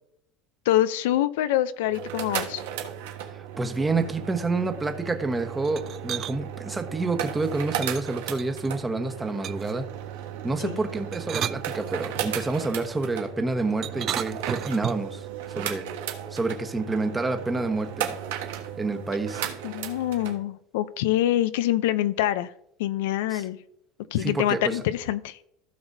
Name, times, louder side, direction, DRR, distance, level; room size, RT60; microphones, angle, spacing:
voice 1, 0.6-2.7 10.6-10.8 19.6-22.5 22.8-23.6 24.1-25.4, left 13 dB, 90° left, 0.6 m, -25 dB
sound 1, 1.8-20.4, right 10 dB, 90° right, 1.4 m, -35 dB
voice 2, 3.3-9.8 10.4-15.9 16.3-18.1 18.8-19.5 23.3-23.4 24.2-24.7, right 3 dB, 15° right, 1.2 m, -28 dB
sound 2, 5.6-6.4 7.8-8.7 9.4-9.8 11.0-12.3 13.8-15.2, right 10 dB, 40° right, 0.4 m, -34 dB
16.0 x 6.0 x 2.7 m
supercardioid pair, 125°, 0 cm